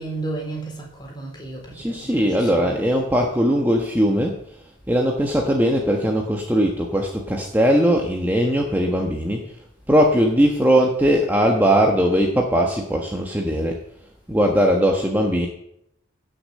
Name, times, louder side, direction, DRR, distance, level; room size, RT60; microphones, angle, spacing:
voice 1, 0.0-2.8, right 2 dB, 20° left, 3.9 m, -33 dB
voice 2, 1.7-4.4 4.9-9.5 9.9-13.8 14.3-15.5, equal, 10° right, 1.3 m, -19 dB
16.5 x 6.7 x 7.6 m
head